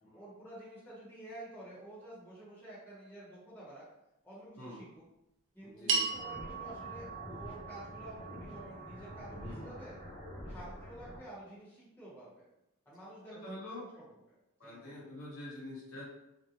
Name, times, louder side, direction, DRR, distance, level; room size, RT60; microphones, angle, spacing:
voice 1, 0.1-3.8 4.2-5.0 5.5-10.0 10.5-12.5 12.8-13.8 14.3-14.4 14.6-15.1, right 1 dB, 10° left, -10 dB, 0.9 m, -50 dB
voice 2, 5.6-6.1 9.3-9.7 13.4-13.8 14.6-16.0, left 1 dB, 65° left, -6 dB, 1.0 m, -46 dB
sound 1, 5.9-10.3, right 4 dB, 55° right, 0.4 m, -38 dB
sound 2, 6.1-11.2, equal, 30° left, 0.6 m, -47 dB
2.4 x 2.1 x 2.8 m, 0.88 s
head